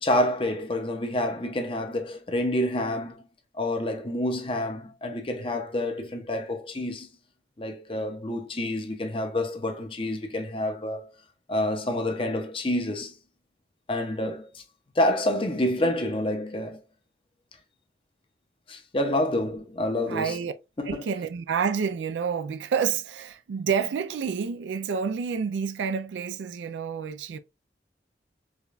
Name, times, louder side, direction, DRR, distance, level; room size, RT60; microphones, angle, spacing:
voice 1, 0.0-3.2 3.6-7.1 7.6-11.1 11.5-13.1 13.9-14.6 15.0-16.8 18.7-20.4 20.8-21.0, left 1 dB, 30° left, 0.6 m, -28 dB
voice 2, 20.1-20.5 20.8-27.4, right 6 dB, 80° right, 0.3 m, -29 dB
4.8 x 2.3 x 2.4 m
head